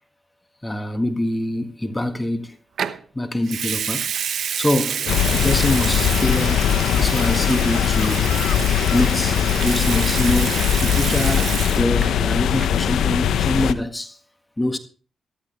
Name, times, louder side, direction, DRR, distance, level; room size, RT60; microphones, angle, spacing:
voice 1, 0.6-2.6 3.1-4.1 4.6-6.7 7.0-8.4 8.9-14.2 14.6-14.8, left 1 dB, 15° left, 1.8 m, -24 dB
Water tap faucet / Sink (filling or washing) / Liquid, 2.8-3.0 3.5-12.2 12.5-12.8, right 8 dB, 75° right, 0.9 m, -28 dB
sound 1, 5.1-13.7, left 10 dB, 85° left, 0.8 m, -20 dB
13.5 x 13.5 x 3.4 m
cardioid pair, 60°, 0 cm